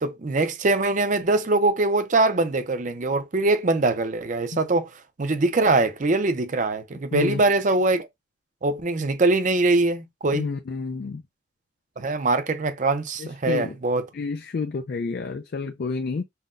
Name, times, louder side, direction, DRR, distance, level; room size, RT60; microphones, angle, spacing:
voice 1, 0.0-8.1 8.6-10.5 12.0-14.1, right 2 dB, 45° right, 0.5 m, -23 dB
voice 2, 10.3-11.2 13.2-13.7 14.1-16.2, left 4 dB, 55° left, 0.4 m, -29 dB
5.6 x 2.2 x 2.5 m
head